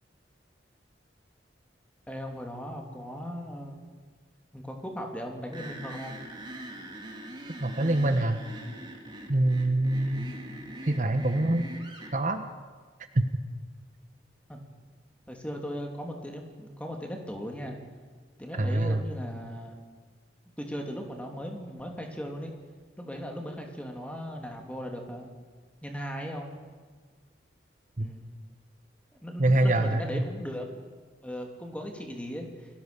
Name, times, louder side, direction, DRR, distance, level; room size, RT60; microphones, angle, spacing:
voice 1, 2.1-3.8 4.5-6.2 10.1-10.2 14.5-14.6 15.3-17.8 18.4-19.8 20.6-22.5 23.0-25.3 25.8-26.6 28.0-28.3 29.2-30.7 31.2-32.8, equal, 5° left, 2 dB, 2.9 m, -38 dB
sound 1, 5.5-12.1, right 1 dB, 25° right, 3.2 m, -42 dB
voice 2, 7.6-8.4 9.3-10.3 10.8-11.7 12.1-12.4 13.1-13.2 18.6-19.0 28.0-28.1 29.4-30.2, right 1 dB, 45° right, 7 dB, 1.2 m, -25 dB
28.5 x 19.0 x 7.0 m, 1.5 s
head